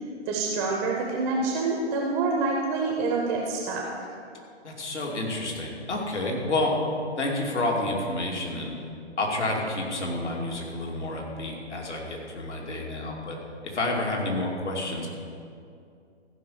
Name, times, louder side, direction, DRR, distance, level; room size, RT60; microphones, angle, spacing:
voice 1, 0.3-3.9, right 3 dB, 10° right, -1 dB, 0.4 m, -27 dB
voice 2, 4.6-6.7 7.2-8.7 9.2-13.4 13.6-15.1, left 2 dB, 80° left, -1 dB, 2.7 m, -29 dB
15.0 x 5.4 x 7.0 m, 2.4 s
figure-of-eight pair, 135°, 34 cm